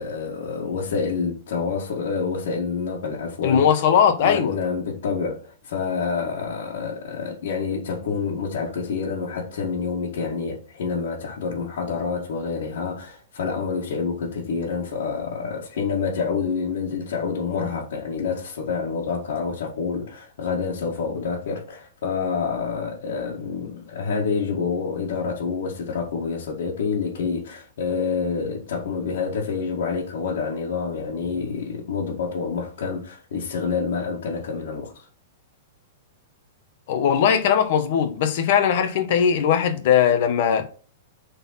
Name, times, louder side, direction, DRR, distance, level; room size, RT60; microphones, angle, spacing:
voice 1, 0.0-3.7 4.2-35.1, left 5 dB, 65° left, 2.1 m, -27 dB
voice 2, 3.4-4.5 36.9-40.6, left 8 dB, 45° left, 1.2 m, -19 dB
7.8 x 4.2 x 4.3 m
supercardioid pair, 170°, 0 cm